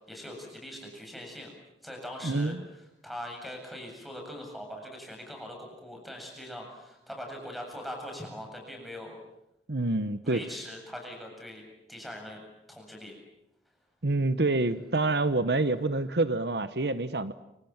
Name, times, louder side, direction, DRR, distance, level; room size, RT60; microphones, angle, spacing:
voice 1, 0.1-1.5 1.8-2.5 3.0-9.2 10.2-11.6 11.9-12.4 12.7-13.1, equal, ahead, 2 dB, 7.7 m, -41 dB
voice 2, 2.2-2.6 9.7-10.5 14.0-17.3, right 2 dB, 70° right, 12 dB, 1.1 m, -27 dB
28.5 x 26.5 x 7.4 m, 0.88 s
head